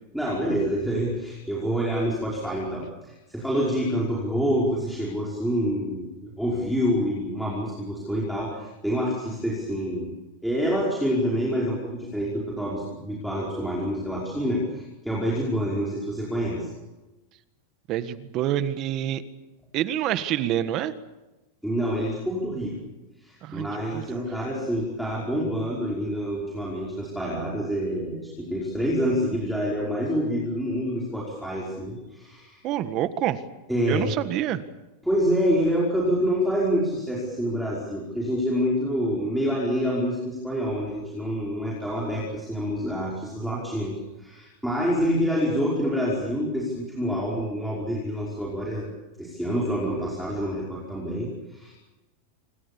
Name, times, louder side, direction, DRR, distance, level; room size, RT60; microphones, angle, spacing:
voice 1, 0.1-10.1 10.4-16.7 21.6-22.7 23.2-32.6 33.7-34.1 35.0-48.9 49.2-51.7, equal, ahead, -5 dB, 5.4 m, -27 dB
voice 2, 17.9-19.2 19.7-20.9 23.4-24.0 32.6-33.4 33.9-34.6, right 12 dB, 35° right, 12 dB, 1.6 m, -27 dB
27.0 x 24.5 x 7.1 m, 1.1 s
supercardioid pair, 160°, 0 cm